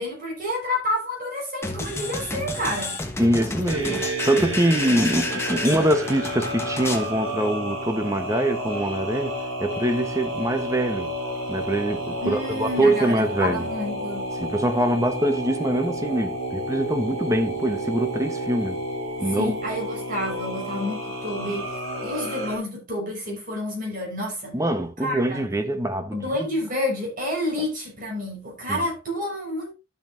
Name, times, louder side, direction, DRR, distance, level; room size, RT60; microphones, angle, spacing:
voice 1, 0.0-3.0 12.2-14.3 19.2-24.6 25.0-25.5 26.1-29.7, left 1 dB, 40° right, 5.5 m, -29 dB
sound 1, 1.6-7.1, left 2 dB, 15° left, 1.2 m, -31 dB
voice 2, 3.2-11.1 11.5-13.7 14.4-18.8 19.2-19.5 24.5-26.2 28.7-28.8, right 1 dB, 15° right, 1.0 m, -24 dB
sound 2, 3.7-22.6, right 1 dB, 75° right, 3.8 m, -31 dB
12.0 x 7.5 x 2.6 m
head